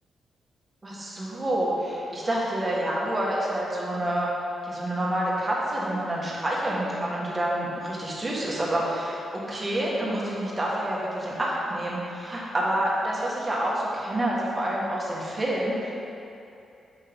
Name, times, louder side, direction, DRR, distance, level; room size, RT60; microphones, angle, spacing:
voice 1, 0.8-4.3 4.6-15.9, right 1 dB, 20° right, -5 dB, 1.4 m, -28 dB
7.6 x 5.4 x 3.5 m, 2.7 s
cardioid pair, 125°, 0 cm